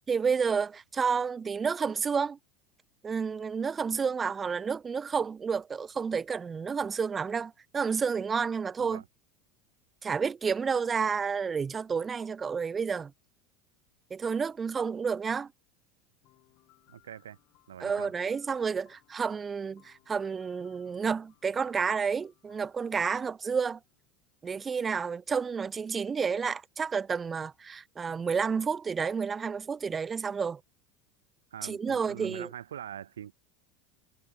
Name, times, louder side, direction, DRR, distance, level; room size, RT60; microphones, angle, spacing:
voice 1, 0.1-2.4 3.0-9.0 10.0-13.1 14.1-15.5 17.8-23.8 24.4-30.6 31.6-32.5, right 6 dB, 25° right, 0.4 m, -30 dB
sound 1, 16.2-24.1, left 22 dB, 60° left, 4.9 m, -66 dB
voice 2, 16.9-17.4 17.7-18.1 31.5-33.3, right 10 dB, 90° right, 0.8 m, -43 dB
hypercardioid pair, 90°, 0 cm